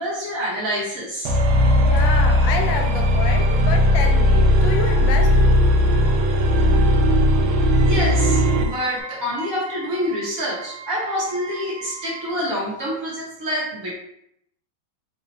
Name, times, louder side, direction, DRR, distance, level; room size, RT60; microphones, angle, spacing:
voice 1, 0.0-1.4 7.8-13.9, equal, 50° right, -5 dB, 1.2 m, -27 dB
sound 1, 1.2-8.7, left 1 dB, 90° right, 1.5 m, -17 dB
voice 2, 1.8-5.5, left 5 dB, 75° left, 3 dB, 1.3 m, -28 dB
Wind instrument woodwind instrument, 8.1-12.6, right 5 dB, 75° right, 0.9 m, -39 dB
4.1 x 2.3 x 3.9 m, 0.74 s
omnidirectional pair, 2.2 m